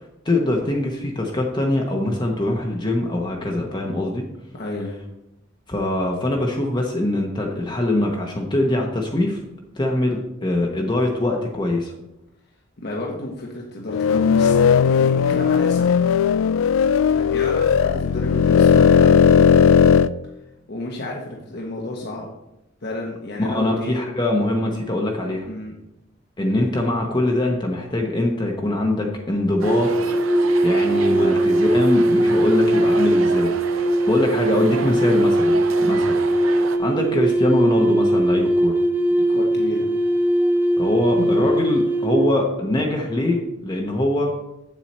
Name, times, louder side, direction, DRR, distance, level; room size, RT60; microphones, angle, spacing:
voice 1, 0.2-4.3 5.7-9.4 9.8-11.9 23.4-25.5 26.4-29.9 30.6-33.5 34.1-36.2 36.8-38.8 40.8-44.3, left 1 dB, 20° left, 0 dB, 0.9 m, -23 dB
voice 2, 4.5-5.0 12.8-15.9 17.2-19.6 20.7-22.3 22.8-24.0 25.4-25.7 31.1-31.4 32.1-32.5 35.8-36.1 39.2-39.9 41.2-41.4, left 1 dB, 55° left, -2 dB, 1.1 m, -32 dB
sound 1, 13.9-20.1, left 7 dB, 90° left, 0.3 m, -16 dB
sound 2, 29.6-42.4, right 1 dB, 10° right, 0.5 m, -20 dB
sound 3, 29.6-36.8, right 5 dB, 90° right, 0.6 m, -32 dB
8.1 x 7.4 x 4.2 m, 0.90 s
head